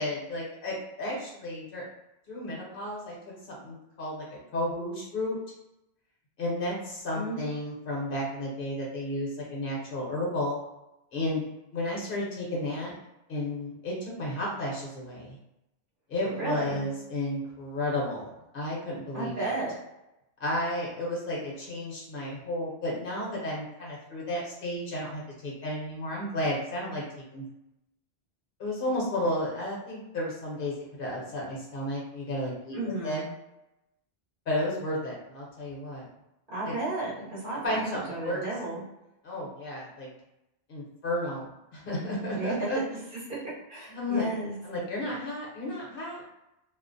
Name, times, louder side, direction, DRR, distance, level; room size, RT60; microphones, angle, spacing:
voice 1, 0.0-1.8 2.3-3.2 3.5-4.3 4.5-5.4 6.4-10.6 11.1-11.5 11.7-12.9 13.3-15.4 16.1-19.5 20.4-27.0 27.3-27.4 28.6-32.8 33.0-33.2 34.5-36.1 36.6-36.7 37.5-38.4 39.2-40.1 40.7-42.8 43.9-44.3 44.6-46.2, left 1 dB, 60° left, -3 dB, 0.9 m, -32 dB
voice 2, 16.3-16.8 19.1-19.7 32.7-33.3 36.5-38.8 42.3-42.7 43.1-43.2 43.7-44.5, right 2 dB, 60° right, -7 dB, 1.0 m, -33 dB
2.4 x 2.0 x 2.5 m, 0.91 s
omnidirectional pair, 1.0 m